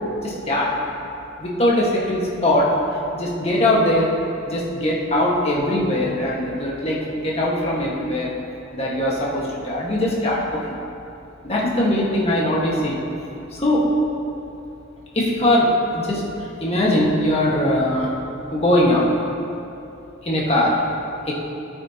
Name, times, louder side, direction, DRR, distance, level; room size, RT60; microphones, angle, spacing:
voice 1, 0.2-0.7 1.4-2.7 3.1-4.1 4.5-8.3 8.7-10.4 10.7-10.8 11.4-13.0 13.5-13.8 15.1-16.2 16.6-18.1 18.5-19.1 20.2-20.8 21.3-21.4, left 1 dB, 30° left, -5 dB, 1.7 m, -21 dB
13.5 x 8.7 x 3.0 m, 2.7 s
head